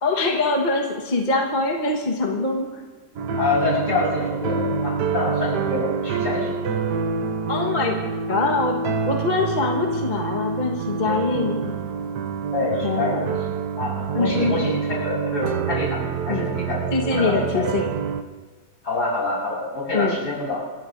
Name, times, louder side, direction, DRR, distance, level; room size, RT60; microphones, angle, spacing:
voice 1, 0.0-2.8 7.5-8.0 8.3-8.7 9.1-11.7 12.8-13.4 14.1-14.6 16.3-16.5 16.9-17.9 19.9-20.2, left 3 dB, 30° left, 1 dB, 1.4 m, -23 dB
sound 1, 3.2-18.2, right 5 dB, 75° right, 1.4 m, -27 dB
voice 2, 3.4-6.6 12.5-13.2 13.8-16.9 17.2-17.7 18.8-20.7, left 3 dB, 75° left, -5 dB, 5.8 m, -26 dB
27.5 x 14.5 x 2.6 m, 1.4 s
omnidirectional pair, 1.8 m